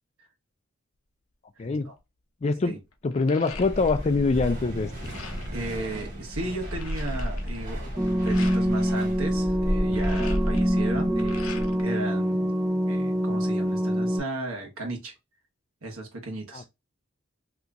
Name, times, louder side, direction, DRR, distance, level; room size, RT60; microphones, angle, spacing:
voice 1, 1.6-1.9 2.6-2.8 5.5-7.9 8.2-12.5 12.8-15.1 15.8-16.7, right 2 dB, 85° right, 1.2 m, -35 dB
sound 1, 2.0-2.1 2.4-4.2 4.5-5.6 6.1-6.2 6.4-8.6 9.7-11.9 12.3-13.1, left 6 dB, 85° left, 0.8 m, -45 dB
voice 2, 2.4-2.7 3.0-4.9 16.5-16.6, left 3 dB, 30° left, 0.3 m, -24 dB
sound 2, 3.5-11.8, equal, 40° right, 1.1 m, -32 dB
sound 3, 8.0-14.2, equal, 20° right, 0.7 m, -25 dB
2.9 x 2.5 x 3.4 m
head